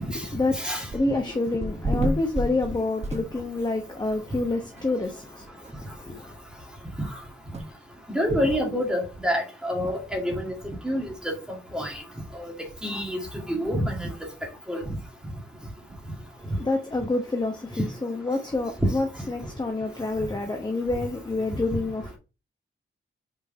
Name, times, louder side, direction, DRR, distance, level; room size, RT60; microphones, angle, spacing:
voice 1, 0.0-6.4 16.4-22.2, left 2 dB, 20° left, 1.0 m, -28 dB
voice 2, 0.5-0.8 8.1-10.5 10.8-11.3 11.7-12.0 12.3-12.5 12.8-13.2 13.5-14.1 14.7-14.8, equal, 5° right, 2.3 m, -27 dB
sound 1, 0.9-1.3 1.6-3.7 4.1-4.2 4.8-4.9 5.1-5.2 5.6-5.7 7.5-7.7, right 1 dB, 35° right, 1.2 m, -30 dB
5.5 x 4.6 x 5.1 m
wide cardioid pair, 145°, 20 cm